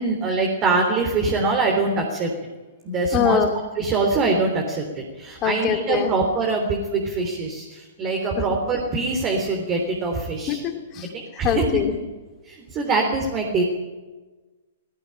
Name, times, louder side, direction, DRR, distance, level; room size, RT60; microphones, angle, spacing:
voice 1, 0.0-2.3 2.8-3.4 3.8-10.6 11.1-11.6 12.4-13.6, right 3 dB, 30° right, 2 dB, 3.6 m, -23 dB
voice 2, 3.1-3.5 5.4-6.1 8.4-8.5 10.5-11.1 11.4-11.9, left 8 dB, 30° left, 4 dB, 3.0 m, -23 dB
18.0 x 18.0 x 9.0 m, 1.2 s
hypercardioid pair, 115°, 0 cm